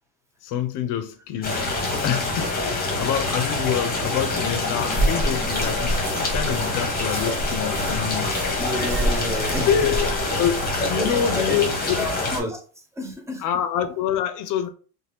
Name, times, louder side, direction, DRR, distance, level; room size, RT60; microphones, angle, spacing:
voice 1, 0.4-1.7 2.0-8.4 9.6-10.1 10.4-12.1 13.4-14.7, left 9 dB, 50° left, 0.5 m, -26 dB
sound 1, 1.4-12.4, left 2 dB, 20° left, 0.9 m, -26 dB
sound 2, 4.9-11.0, right 1 dB, 45° right, 0.9 m, -29 dB
voice 2, 8.6-9.7 10.8-11.6 12.0-12.6 13.0-13.4, left 1 dB, 5° right, 0.4 m, -30 dB
2.7 x 2.2 x 3.3 m
cardioid pair, 135°, 42 cm